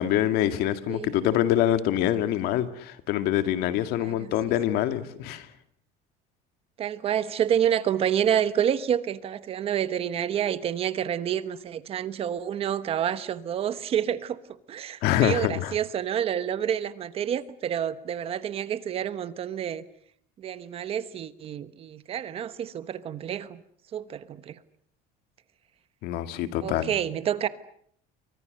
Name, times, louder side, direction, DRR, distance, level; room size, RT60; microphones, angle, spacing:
voice 1, 0.0-5.5 15.0-15.7 26.0-26.9, left 12 dB, 65° left, 2.1 m, -25 dB
voice 2, 0.9-1.2 4.0-4.3 6.8-14.4 14.7-19.8 20.4-23.6 23.9-24.5 26.6-27.5, right 9 dB, 35° right, 1.1 m, -28 dB
29.0 x 24.5 x 6.6 m
cardioid pair, 175°, 17 cm